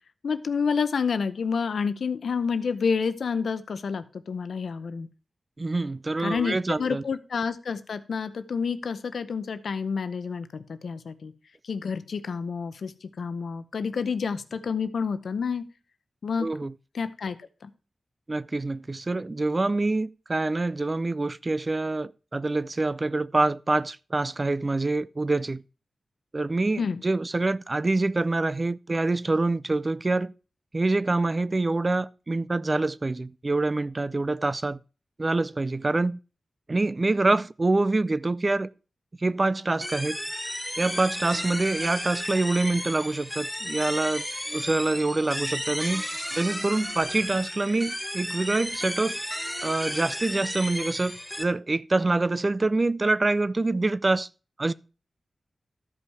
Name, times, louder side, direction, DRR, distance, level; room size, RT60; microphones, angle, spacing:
voice 1, 0.2-5.1 6.2-11.3 11.6-15.7 16.2-16.5 16.9-17.7 26.8-27.0, left 5 dB, 85° left, 0.7 m, -29 dB
voice 2, 5.6-7.0 16.4-16.7 18.3-25.6 26.3-30.3 30.7-34.8 35.2-36.2 36.7-38.7 39.2-40.2 40.8-46.0 46.4-49.2 49.6-54.3 54.6-54.7, right 2 dB, 35° right, 0.4 m, -26 dB
sound 1, 39.8-51.4, equal, 5° left, 0.8 m, -33 dB
13.0 x 5.4 x 4.7 m
wide cardioid pair, 85°, 0 cm